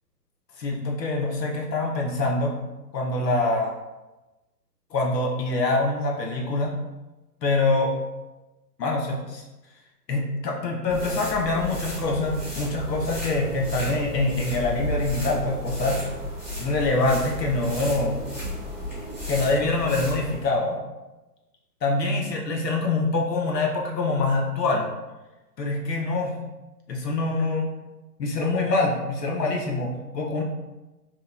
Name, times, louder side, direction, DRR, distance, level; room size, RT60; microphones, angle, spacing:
voice 1, 0.6-2.7 2.9-3.7 4.9-6.8 7.4-7.9 8.8-9.4 10.1-16.0 16.6-18.2 19.3-20.8 21.8-24.9 25.6-26.4 26.9-27.7 28.2-30.4, left 2 dB, 75° left, -1 dB, 0.7 m, -25 dB
sound 1, 10.9-20.5, equal, ahead, 1.0 m, -33 dB
2.8 x 2.1 x 2.4 m, 1.1 s
figure-of-eight pair, 135°, 49 cm